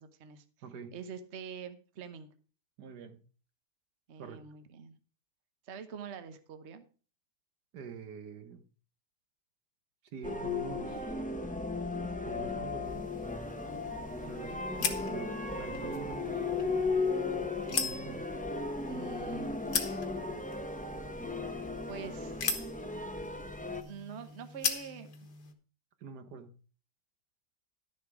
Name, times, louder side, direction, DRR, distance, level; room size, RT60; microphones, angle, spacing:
voice 1, 0.0-0.4 0.9-2.3 4.1-5.0 5.6-6.8 18.9-19.5 21.9-22.4 23.8-25.1, right 7 dB, 45° right, 1.2 m, -45 dB
voice 2, 0.6-0.9 2.8-3.2 4.2-4.4 7.7-8.6 10.1-11.2 12.1-13.1 14.2-16.4 17.7-18.3 26.0-26.6, right 5 dB, 75° right, 1.6 m, -45 dB
sound 1, 10.2-23.8, left 3 dB, 10° left, 0.5 m, -36 dB
sound 2, 12.8-25.5, left 5 dB, 75° left, 1.9 m, -40 dB
11.5 x 7.2 x 4.8 m
omnidirectional pair, 1.8 m